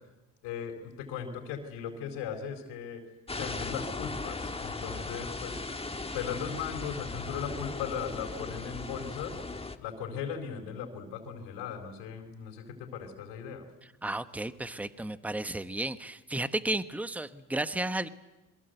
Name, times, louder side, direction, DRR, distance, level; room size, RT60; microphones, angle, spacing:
voice 1, 0.4-3.0 3.3-5.6 6.1-9.4 9.8-13.6, left 7 dB, 80° left, 2 dB, 4.3 m, -38 dB
sound 1, 3.3-9.8, left 3 dB, 15° left, 1.7 m, -38 dB
voice 2, 14.0-18.1, right 2 dB, 5° right, 12 dB, 1.1 m, -33 dB
26.5 x 23.0 x 8.0 m, 1.0 s
supercardioid pair, 80°, 42 cm